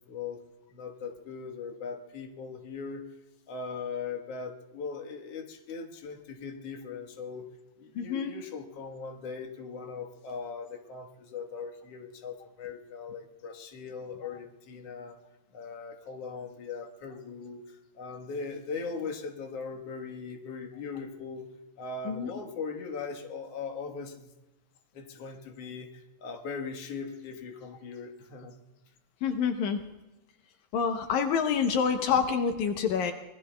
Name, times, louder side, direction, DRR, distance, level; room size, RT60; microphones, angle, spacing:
voice 1, 0.1-0.4 0.7-3.1 3.5-7.5 7.8-15.2 15.5-21.5 21.8-24.3 24.9-28.6, left 5 dB, 60° left, 3 dB, 2.3 m, -39 dB
voice 2, 8.0-8.3 22.1-22.3 29.2-29.8 30.7-33.1, left 6 dB, 80° left, 6 dB, 2.2 m, -27 dB
26.0 x 21.0 x 2.2 m, 1.0 s
omnidirectional pair, 3.3 m